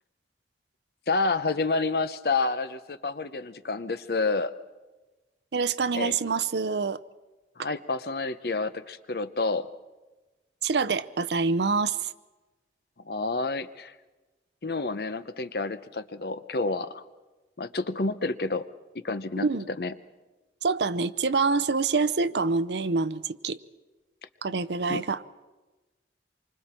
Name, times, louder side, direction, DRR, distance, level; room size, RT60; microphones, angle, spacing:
voice 1, 1.1-4.5 5.9-6.2 7.6-9.7 13.0-13.9 14.6-17.0 17.6-18.7 19.0-19.9 24.9-25.0, left 3 dB, 60° left, 13 dB, 0.8 m, -29 dB
voice 2, 5.5-7.0 10.6-12.1 19.4-19.7 20.6-23.6 24.4-25.2, right 4 dB, 75° right, 14 dB, 0.7 m, -26 dB
27.5 x 24.5 x 4.4 m, 1.2 s
head